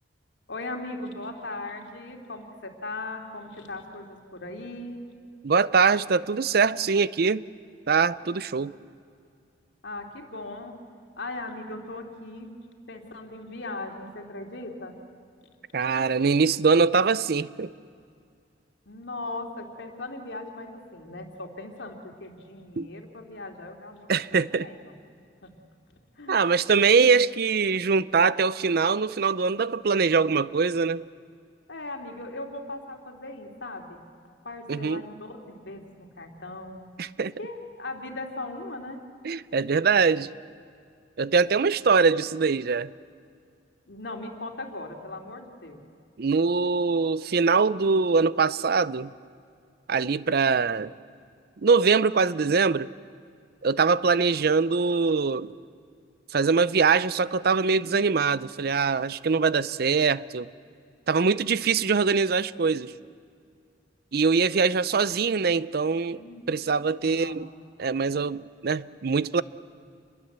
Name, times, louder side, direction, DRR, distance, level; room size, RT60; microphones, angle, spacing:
voice 1, 0.5-5.0 9.8-10.7 11.2-12.5 12.9-15.0 18.9-24.9 25.4-25.5 26.2-26.5 31.7-34.0 34.4-36.9 37.4-39.0 43.9-45.8 66.2-66.4 67.0-67.4, left 2 dB, 80° left, 3.0 m, -38 dB
voice 2, 5.4-7.5 7.9-8.7 15.7-17.7 22.8-22.9 24.1-24.7 26.3-31.1 34.7-35.0 37.0-37.3 39.2-40.3 41.2-42.9 46.2-49.1 49.9-50.9 51.6-52.9 53.6-55.5 56.3-60.5 61.1-62.9 64.1-66.2 66.5-67.5 67.8-69.4, right 5 dB, 60° right, 0.5 m, -23 dB
28.0 x 22.0 x 8.1 m
head